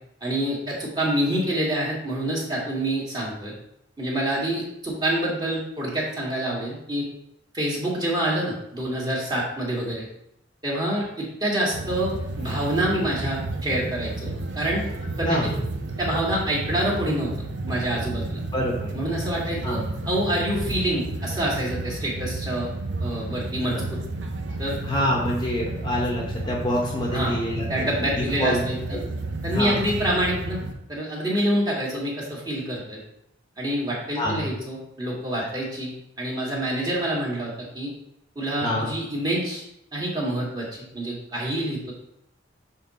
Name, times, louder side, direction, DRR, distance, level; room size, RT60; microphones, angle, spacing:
voice 1, 0.2-3.5 4.0-7.1 7.5-10.1 10.6-12.1 12.4-14.8 15.2-15.5 16.0-17.3 17.7-18.4 18.9-19.8 20.1-22.7 23.0-24.0 24.6-24.8 27.1-27.3 27.7-29.0 29.4-30.6 30.9-33.0 33.6-37.9 38.4-39.6 39.9-41.9, right 1 dB, 20° right, -5 dB, 1.8 m, -27 dB
sound 1, 11.7-30.7, right 2 dB, 70° right, 0.7 m, -32 dB
voice 2, 18.5-19.0 19.6-19.9 23.6-23.9 24.8-28.6 28.9-29.0 29.5-29.9 34.2-34.5 35.4-35.5 38.6-38.9, equal, 25° left, -2 dB, 0.9 m, -26 dB
6.6 x 3.7 x 4.2 m, 0.80 s
head